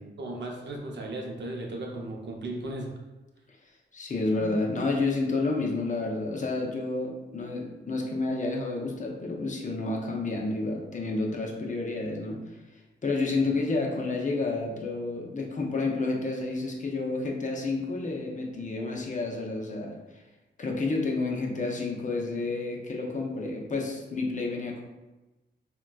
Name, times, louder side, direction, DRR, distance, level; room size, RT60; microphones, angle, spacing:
voice 1, 0.2-2.9 4.4-4.5, right 2 dB, 70° right, 0 dB, 0.6 m, -36 dB
voice 2, 3.9-12.6 13.0-20.2 20.6-24.8, left 3 dB, 40° left, -1 dB, 0.6 m, -30 dB
3.8 x 2.2 x 2.3 m, 1.1 s
wide cardioid pair, 95°, 19 cm